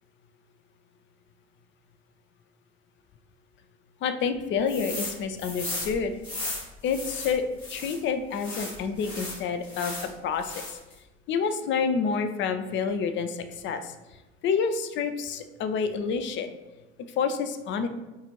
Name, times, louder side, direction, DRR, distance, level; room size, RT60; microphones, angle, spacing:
voice 1, 4.0-6.1 6.8-7.4 7.7-10.8 11.3-13.9 14.4-16.5 17.2-17.9, left 6 dB, 40° left, 9 dB, 0.4 m, -28 dB
sound 1, 4.7-5.1 5.4-8.0 8.4-10.1 10.4-10.9, left 2 dB, 85° left, 1.4 m, -36 dB
5.4 x 2.5 x 2.9 m, 1.1 s
figure-of-eight pair, 55°, 32 cm